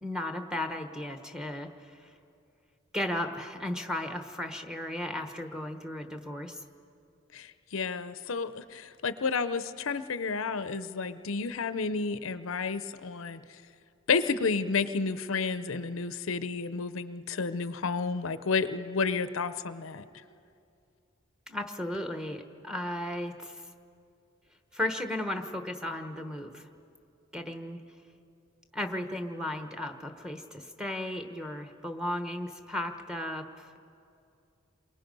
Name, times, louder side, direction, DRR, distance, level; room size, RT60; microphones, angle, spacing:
voice 1, 0.0-1.7 2.9-6.6 21.5-23.6 24.7-26.6 27.3-27.8 28.7-33.7, left 1 dB, 5° right, 6 dB, 1.1 m, -35 dB
voice 2, 7.3-13.4 14.1-20.0, left 4 dB, 70° left, 12 dB, 0.6 m, -31 dB
28.5 x 23.0 x 5.3 m, 2.5 s
head